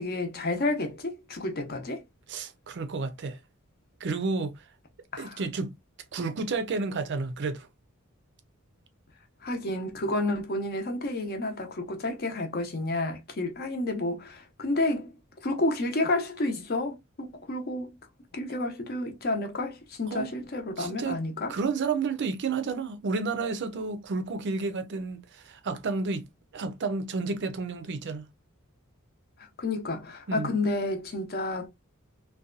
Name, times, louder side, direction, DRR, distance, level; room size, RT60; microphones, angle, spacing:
voice 1, 0.0-2.0 5.1-5.4 9.4-15.1 15.4-17.9 18.3-21.5 29.6-31.7, left 2 dB, 45° left, 0.7 m, -30 dB
voice 2, 2.3-3.4 4.0-4.7 5.2-5.7 6.1-7.7 20.1-20.3 20.8-21.2 21.5-26.2 26.5-28.3 30.3-30.5, right 4 dB, 55° right, 0.5 m, -31 dB
2.7 x 2.2 x 2.4 m
head